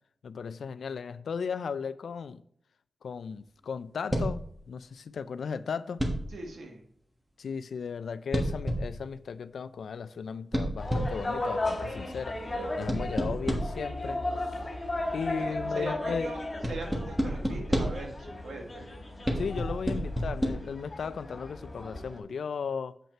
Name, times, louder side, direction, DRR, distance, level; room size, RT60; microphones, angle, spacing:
voice 1, 0.2-2.4 3.0-6.0 7.4-12.4 12.7-14.2 15.1-16.3 19.4-22.9, left 6 dB, 85° left, 0.4 m, -36 dB
sound 1, 4.1-4.5 6.0-6.4 8.3-9.0 10.5-11.3 12.9-13.9 16.6-18.1 19.3-20.5, equal, 5° right, 1.2 m, -30 dB
voice 2, 6.3-6.8 15.4-16.4 16.7-18.9, right 2 dB, 85° right, 1.7 m, -40 dB
sound 2, 10.8-22.2, left 2 dB, 20° left, 2.6 m, -36 dB
7.4 x 5.5 x 4.4 m
wide cardioid pair, 175°, 0 cm